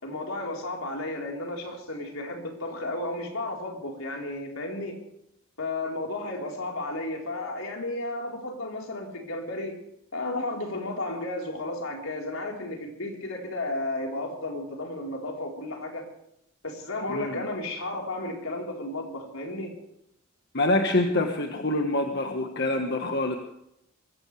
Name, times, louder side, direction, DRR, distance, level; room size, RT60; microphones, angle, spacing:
voice 1, 0.0-5.0 5.6-9.8 10.1-16.0 16.6-19.7, left 2 dB, 80° left, 1 dB, 4.2 m, -33 dB
voice 2, 17.1-17.4 20.5-23.4, left 2 dB, 55° left, 4 dB, 1.5 m, -26 dB
22.5 x 16.5 x 3.4 m, 0.80 s
head